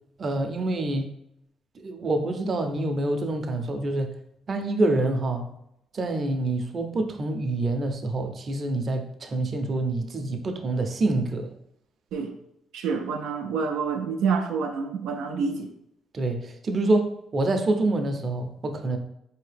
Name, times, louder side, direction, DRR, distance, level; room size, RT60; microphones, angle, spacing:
voice 1, 0.2-1.1 1.8-4.1 4.5-5.4 5.9-11.5 16.1-19.0, right 2 dB, 45° right, 5 dB, 0.6 m, -26 dB
voice 2, 12.7-15.7, right 5 dB, 90° right, 3 dB, 0.4 m, -27 dB
4.1 x 2.8 x 3.3 m, 0.78 s
cardioid pair, 90°, 0 cm